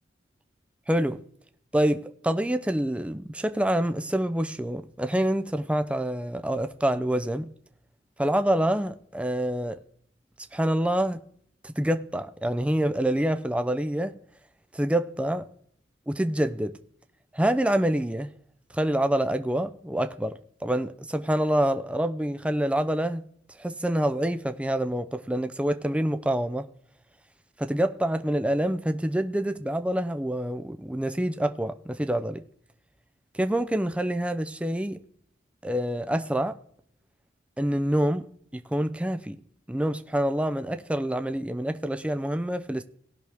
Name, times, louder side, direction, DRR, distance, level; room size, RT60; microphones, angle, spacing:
voice 1, 0.9-1.2 1.7-7.5 8.2-9.8 10.5-11.2 11.6-14.1 14.7-15.5 16.1-16.8 17.3-18.3 18.7-23.2 23.5-26.7 27.6-32.4 33.3-35.0 35.6-36.6 37.6-38.3 38.5-39.4 39.7-42.8, right 1 dB, 5° right, 0.5 m, -26 dB
18.5 x 6.2 x 3.4 m
head